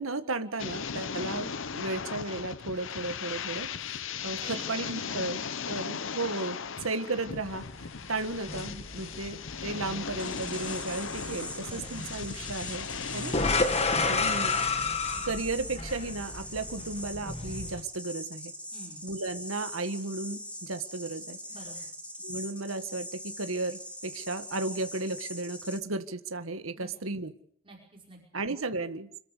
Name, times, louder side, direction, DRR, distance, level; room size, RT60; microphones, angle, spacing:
voice 1, 0.0-5.4 5.7-7.6 8.1-12.9 13.1-13.4 14.0-14.6 15.2-18.5 19.0-21.4 22.2-27.3 28.3-29.2, right 2 dB, 80° right, 9 dB, 1.6 m, -34 dB
sound 1, 0.6-13.7, left 6 dB, 65° left, 0.8 m, -37 dB
voice 2, 4.4-5.3 5.7-6.0 11.6-11.9 13.6-14.2 18.7-19.0 21.5-21.8 26.8-26.9 27.6-28.4, right 2 dB, 25° right, -2 dB, 5.3 m, -48 dB
sound 2, 7.3-17.8, left 3 dB, 30° left, 1.8 m, -32 dB
sound 3, 10.2-25.8, equal, 5° left, 2.9 m, -42 dB
27.0 x 13.5 x 8.4 m, 0.64 s
head